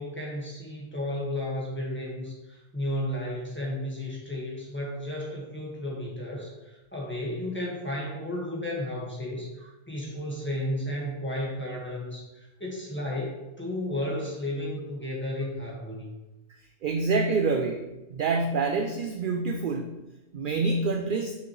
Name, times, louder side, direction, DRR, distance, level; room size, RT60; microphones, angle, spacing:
voice 1, 0.0-16.1, left 1 dB, 10° left, -5 dB, 1.4 m, -33 dB
voice 2, 16.8-20.0 20.3-21.4, right 4 dB, 60° right, 4 dB, 0.5 m, -27 dB
6.0 x 5.8 x 3.1 m, 1.0 s
omnidirectional pair, 1.3 m